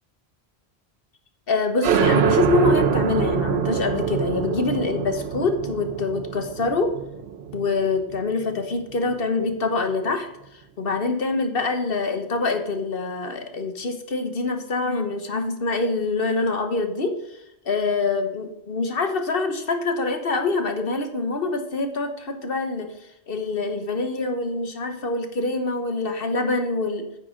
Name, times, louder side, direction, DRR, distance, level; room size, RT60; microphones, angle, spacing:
voice 1, 1.5-6.9 7.5-10.3 10.8-22.9 23.3-27.0, left 3 dB, 65° left, 6 dB, 1.4 m, -25 dB
sound 1, 1.8-9.1, right 8 dB, 80° right, 1.0 m, -25 dB
9.5 x 9.1 x 3.8 m, 0.82 s
omnidirectional pair, 1.1 m